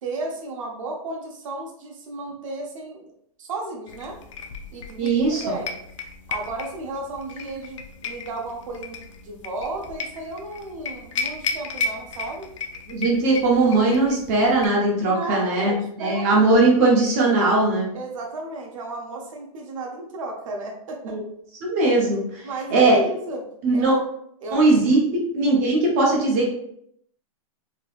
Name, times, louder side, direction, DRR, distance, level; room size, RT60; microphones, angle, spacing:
voice 1, 0.0-3.0 3.4-4.2 4.7-5.8 6.3-12.5 15.0-16.5 17.9-21.2 22.4-23.4 23.7-24.0 24.4-24.6, right 2 dB, 60° right, 1 dB, 0.8 m, -33 dB
sound 1, 3.9-14.7, left 4 dB, 55° left, 0.4 m, -34 dB
voice 2, 5.0-5.4 12.9-17.9 21.0-21.2 21.6-22.4 22.7-23.0 23.6-23.9 24.5-25.0 25.3-26.5, right 2 dB, 25° right, -2 dB, 0.7 m, -19 dB
3.3 x 2.9 x 2.3 m, 0.71 s
supercardioid pair, 180°, 19 cm